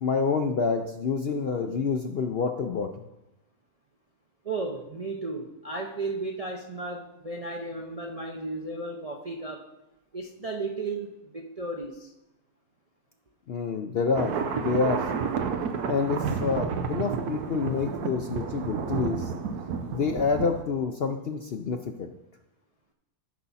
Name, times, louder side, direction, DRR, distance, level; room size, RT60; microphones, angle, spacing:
voice 1, 0.0-2.9 13.5-15.0 15.9-19.3 19.9-22.1, left 5 dB, 60° left, 5 dB, 0.6 m, -28 dB
voice 2, 4.4-9.7 10.1-12.1, right 3 dB, 40° right, 0 dB, 0.5 m, -34 dB
sound 1, 14.1-20.6, right 6 dB, 90° right, 1.3 m, -31 dB
13.5 x 5.8 x 4.1 m, 0.93 s
omnidirectional pair, 1.6 m